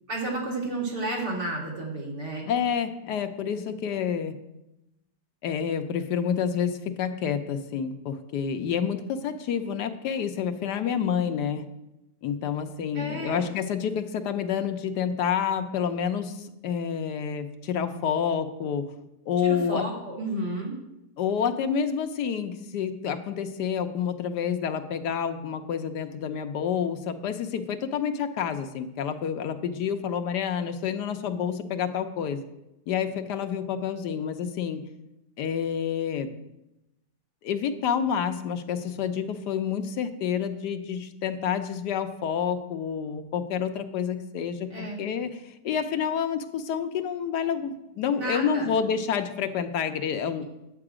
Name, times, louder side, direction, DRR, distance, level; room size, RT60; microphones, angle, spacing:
voice 1, 0.1-2.5 12.9-13.5 19.4-20.8 44.7-45.0 48.2-48.7, right 2 dB, 75° right, -3 dB, 3.0 m, -32 dB
voice 2, 2.5-4.3 5.4-11.6 12.2-18.9 19.3-19.9 21.2-32.4 32.9-34.8 35.4-36.3 37.4-50.4, left 7 dB, 80° left, 7 dB, 1.3 m, -28 dB
9.7 x 7.7 x 4.9 m, 0.92 s
omnidirectional pair, 1.8 m